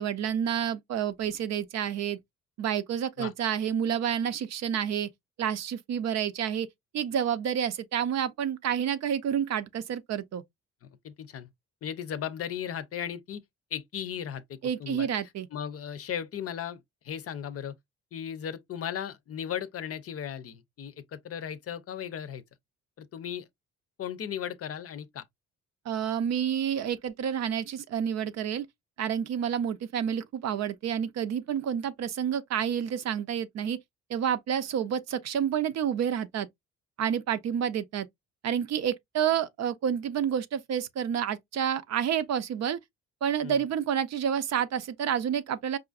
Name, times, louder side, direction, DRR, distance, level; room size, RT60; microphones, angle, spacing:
voice 1, 0.0-2.2 2.6-5.1 5.4-6.7 6.9-10.4 14.6-15.5 25.9-28.7 29.0-33.8 34.1-36.5 37.0-38.1 38.4-42.8 43.2-45.8, right 8 dB, 60° right, 0.6 m, -29 dB
voice 2, 11.0-11.5 11.8-13.4 13.7-15.1 15.5-17.7 18.1-22.4 23.0-23.5 24.0-25.2 43.4-43.6, left 9 dB, 50° left, 0.6 m, -36 dB
4.8 x 2.5 x 2.3 m
cardioid pair, 90°, 30 cm